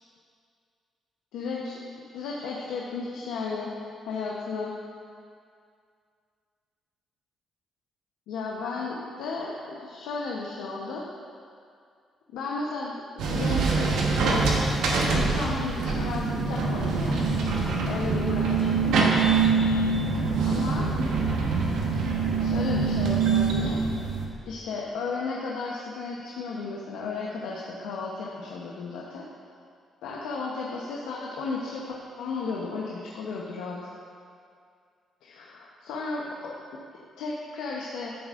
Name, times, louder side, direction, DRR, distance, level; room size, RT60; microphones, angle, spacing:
voice 1, 1.3-1.8 2.1-3.7 4.0-4.8 8.3-11.0 12.3-13.9 14.2-14.5 15.0-17.3 17.9-19.4 20.4-20.9 22.4-23.8 24.5-29.2 30.0-33.8 35.2-36.8 37.2-38.2, left 4 dB, 85° left, -3 dB, 0.8 m, -34 dB
sound 1, 13.2-24.3, right 4 dB, 80° right, 1.1 m, -24 dB
13.0 x 7.1 x 2.5 m, 2.3 s
supercardioid pair, 60°, 0 cm